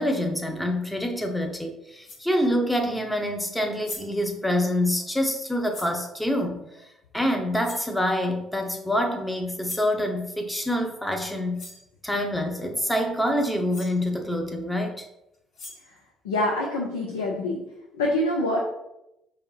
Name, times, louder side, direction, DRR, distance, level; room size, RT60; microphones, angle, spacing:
voice 1, 0.0-6.9 7.1-11.6 12.0-15.0, left 1 dB, 5° left, 3 dB, 0.7 m, -26 dB
sound 1, 1.4-1.5 2.0-2.3 3.5-3.6 3.8-4.2 5.7-6.0 7.6-8.0 9.6-10.0 11.2-11.3 11.5-11.9 13.4-13.5 13.7-14.0 15.3-16.0, left 2 dB, 55° left, 0.9 m, -41 dB
voice 2, 16.2-17.6 17.9-18.6, left 1 dB, 75° left, 0 dB, 0.4 m, -25 dB
4.9 x 2.6 x 3.0 m, 0.86 s
figure-of-eight pair, 50°, 0 cm